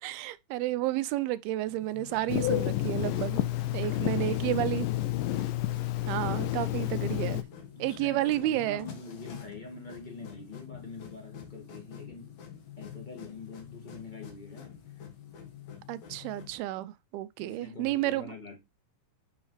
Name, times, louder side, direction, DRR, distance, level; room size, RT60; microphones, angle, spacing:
voice 1, 0.0-3.4 3.7-4.9 6.1-7.5 7.8-8.8 15.9-18.3, right 15 dB, 85° right, 2.5 m, -31 dB
sound 1, 1.7-16.6, left 9 dB, 55° left, 2.6 m, -47 dB
Telephone, 2.3-7.4, left 15 dB, 80° left, 2.3 m, -30 dB
voice 2, 3.8-4.9 7.7-12.4 12.7-15.1 17.4-18.6, left 3 dB, 25° left, 1.1 m, -45 dB
8.0 x 5.6 x 3.2 m
omnidirectional pair, 4.4 m